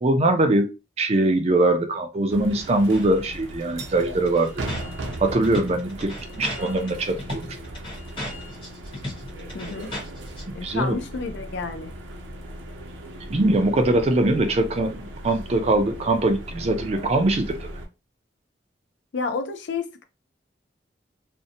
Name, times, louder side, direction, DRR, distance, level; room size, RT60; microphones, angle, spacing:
voice 1, 0.0-0.7 1.0-4.6 5.2-7.6 10.5-11.0 13.3-17.7, right 2 dB, 35° right, 0.4 m, -22 dB
sound 1, 2.3-17.9, right 1 dB, 85° right, 0.5 m, -37 dB
sound 2, 2.6-3.1 3.4-3.5 3.7-10.4, left 1 dB, 25° left, 0.8 m, -37 dB
voice 2, 9.5-9.9 10.5-11.9 19.1-20.0, left 4 dB, 70° left, 0.4 m, -30 dB
2.6 x 2.1 x 2.7 m
head